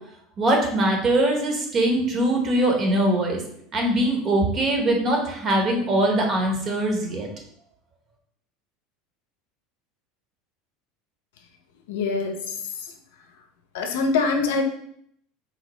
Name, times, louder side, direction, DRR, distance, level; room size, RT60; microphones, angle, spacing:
voice 1, 0.4-3.4 3.7-7.3, right 1 dB, 40° right, 1 dB, 0.9 m, -22 dB
voice 2, 11.9-12.3 13.7-14.6, left 4 dB, 80° left, 4 dB, 0.5 m, -23 dB
4.0 x 2.0 x 3.0 m, 0.69 s
hypercardioid pair, 95°, 0 cm